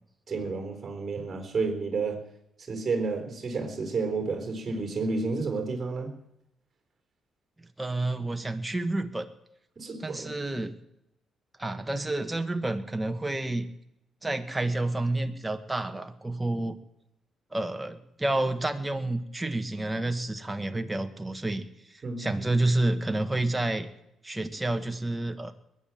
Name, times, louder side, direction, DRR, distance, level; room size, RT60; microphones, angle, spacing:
voice 1, 0.3-2.2 2.6-6.1 9.8-10.3 22.0-22.5, right 4 dB, 35° right, 4 dB, 4.0 m, -31 dB
voice 2, 7.8-9.3 10.0-10.7 11.6-13.7 14.2-16.8 17.5-23.9 24.2-25.5, right 2 dB, 10° right, 7 dB, 1.5 m, -29 dB
21.0 x 9.3 x 7.2 m, 0.84 s
cardioid pair, 90°, 0 cm